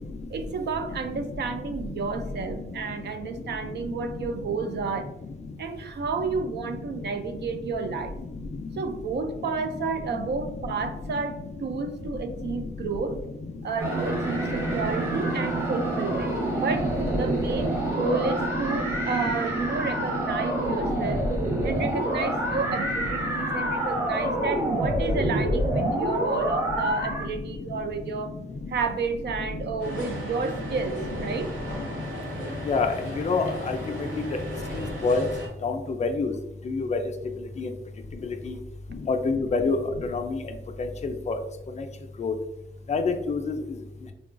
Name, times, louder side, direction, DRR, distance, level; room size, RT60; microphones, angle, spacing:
voice 1, 0.3-5.1 5.6-8.1 8.7-13.2 13.6-21.2 21.6-28.3 28.7-31.5, right 4 dB, 60° right, 8 dB, 0.4 m, -31 dB
sound 1, 13.8-27.3, right 1 dB, 10° right, 0.8 m, -27 dB
sound 2, 29.8-35.5, equal, 75° right, 1.0 m, -35 dB
voice 2, 33.2-33.8 35.0-35.2 35.6-36.3 36.7-37.0 37.6-37.7 38.5-38.6 39.1-39.8 40.1-40.4 41.0-41.4 42.2-42.3 42.9-43.0 43.3-43.5, left 4 dB, 35° left, 6 dB, 0.4 m, -25 dB
3.6 x 2.3 x 2.4 m, 0.90 s
cardioid pair, 105°, 21 cm